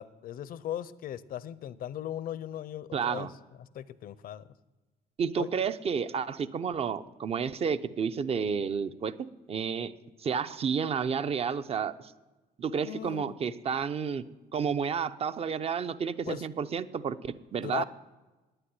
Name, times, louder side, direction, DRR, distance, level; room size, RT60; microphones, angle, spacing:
voice 1, 0.0-3.3 3.6-4.5 5.4-5.5 12.8-13.4 16.3-16.5 17.6-17.8, left 11 dB, 60° left, 17 dB, 0.6 m, -38 dB
voice 2, 2.9-3.3 5.2-9.1 9.5-9.9 10.2-12.1 12.6-14.2 14.5-17.8, right 6 dB, 35° right, 13 dB, 0.7 m, -31 dB
9.6 x 9.0 x 9.7 m, 1.2 s
cardioid pair, 110°, 17 cm